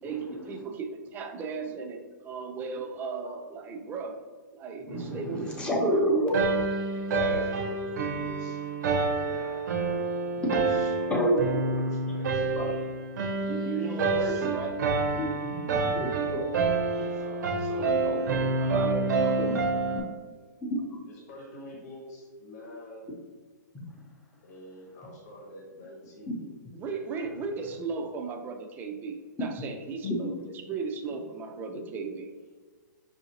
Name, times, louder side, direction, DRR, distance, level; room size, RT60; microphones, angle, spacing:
voice 1, 0.0-4.2 4.5-6.1 6.9-7.0 13.4-14.8 17.7-19.6 26.7-32.3, right 5 dB, 20° right, 5 dB, 0.4 m, -36 dB
voice 2, 4.8-6.3 10.4-10.6 11.1-11.7 12.5-12.7 15.2-16.4 19.5-19.6 20.6-21.0 30.0-30.1, equal, 10° left, -1 dB, 0.8 m, -28 dB
sound 1, 6.3-20.0, right 3 dB, 65° right, 0.6 m, -28 dB
voice 3, 7.0-8.8 9.2-12.9 13.5-14.5 16.9-18.8 21.1-23.1 24.4-26.6 30.4-30.5, left 1 dB, 60° left, -1 dB, 1.1 m, -45 dB
5.4 x 2.7 x 2.8 m, 1.5 s
hypercardioid pair, 135°, 10 cm